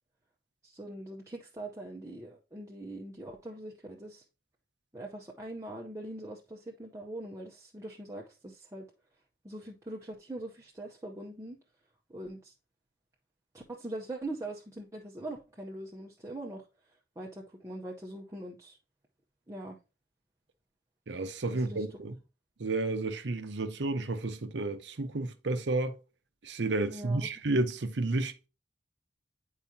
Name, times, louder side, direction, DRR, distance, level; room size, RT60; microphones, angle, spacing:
voice 1, 0.6-4.2 4.9-8.9 9.4-11.6 12.1-12.5 13.5-18.8 19.5-19.8 21.5-21.8 26.9-27.3, right 1 dB, 15° right, 0.7 m, -42 dB
voice 2, 21.1-22.1 22.6-25.9 26.4-28.5, right 2 dB, 70° right, 0.7 m, -31 dB
8.8 x 4.7 x 2.7 m
head